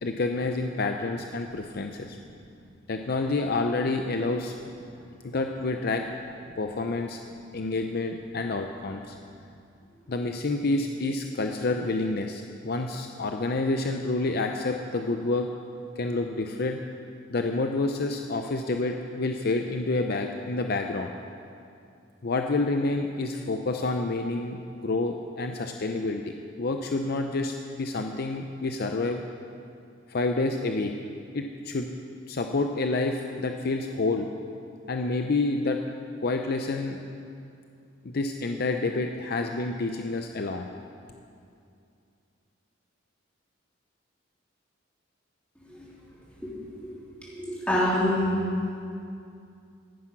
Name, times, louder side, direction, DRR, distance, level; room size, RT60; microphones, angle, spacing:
voice 1, 0.0-2.2 2.9-4.5 5.2-6.0 6.6-7.2 7.5-9.2 10.1-15.5 16.0-16.8 17.3-21.1 22.2-29.2 30.1-30.9 31.3-31.9 32.3-34.3 34.9-35.8 36.2-37.0 38.0-40.7, left 3 dB, 50° left, 4 dB, 0.6 m, -28 dB
voice 2, 47.2-48.2, left 1 dB, 5° left, -8 dB, 3.7 m, -27 dB
14.5 x 9.8 x 6.0 m, 2.5 s
head